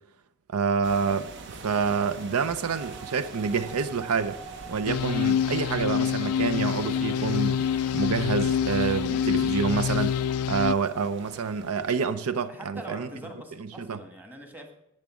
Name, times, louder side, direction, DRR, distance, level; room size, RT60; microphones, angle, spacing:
voice 1, 0.5-4.4 4.7-7.6 7.9-10.1 10.5-13.1 13.8-14.0, right 5 dB, 80° right, 0.5 m, -27 dB
sound 1, 0.8-12.0, right 3 dB, 50° right, 0.8 m, -46 dB
sound 2, 1.0-13.2, right 5 dB, 35° right, 3.1 m, -48 dB
sound 3, 4.9-10.7, left 8 dB, 90° left, 0.4 m, -26 dB
voice 2, 9.0-9.6 12.5-14.7, equal, 10° right, 1.4 m, -43 dB
10.5 x 7.8 x 6.2 m
head